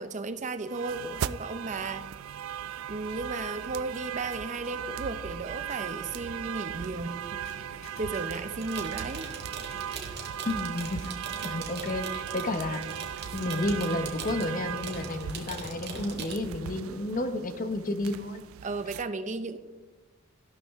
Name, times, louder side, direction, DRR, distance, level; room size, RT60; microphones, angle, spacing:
voice 1, 0.0-2.1 2.9-7.4 7.7-9.3 18.6-19.6, right 3 dB, 35° right, 10 dB, 0.7 m, -35 dB
sound 1, 0.7-19.0, right 9 dB, 70° right, 0.3 m, -38 dB
sound 2, 7.2-15.7, right 1 dB, 70° left, 2.9 m, -50 dB
sound 3, 8.6-16.3, right 5 dB, 50° right, 1.9 m, -41 dB
voice 2, 10.5-11.1 11.4-12.9 13.3-18.4, left 2 dB, 40° left, 9 dB, 0.8 m, -31 dB
14.0 x 12.0 x 3.5 m, 1.2 s
head